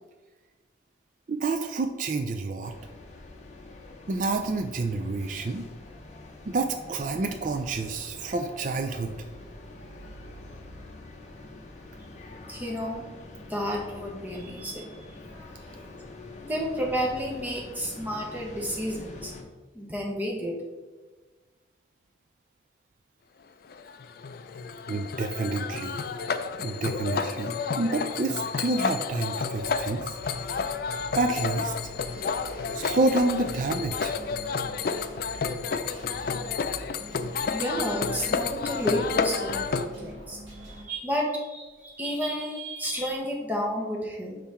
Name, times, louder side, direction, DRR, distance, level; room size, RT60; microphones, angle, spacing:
voice 1, 1.3-2.8 4.1-5.7 6.5-9.2 24.9-26.0 26.6-30.2 31.1-31.9 32.7-34.2, right 3 dB, 40° right, 6 dB, 0.3 m, -28 dB
sound 1, 2.6-19.4, left 2 dB, 35° left, 0.9 m, -45 dB
voice 2, 12.5-13.0 13.5-15.2 16.4-19.3 19.7-20.6 37.4-44.4, equal, 10° right, -2 dB, 1.1 m, -31 dB
sound 2, 23.7-39.9, left 5 dB, 50° left, 0.3 m, -31 dB
sound 3, 29.5-40.8, equal, 90° right, 2.0 m, -45 dB
5.6 x 5.0 x 4.2 m, 1.3 s
head